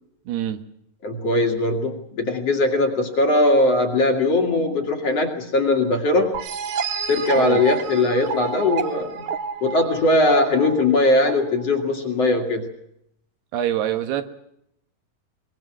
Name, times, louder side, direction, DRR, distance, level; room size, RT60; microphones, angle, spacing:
voice 1, 0.3-0.6 7.4-7.6 13.5-14.2, right 11 dB, 80° right, 9 dB, 3.4 m, -24 dB
voice 2, 1.0-6.4 7.1-9.2 9.6-12.7, left 2 dB, 45° left, 4 dB, 2.9 m, -20 dB
sound 1, 6.3-11.8, right 5 dB, 60° right, 2.2 m, -30 dB
24.0 x 21.5 x 6.2 m, 0.76 s
omnidirectional pair, 4.6 m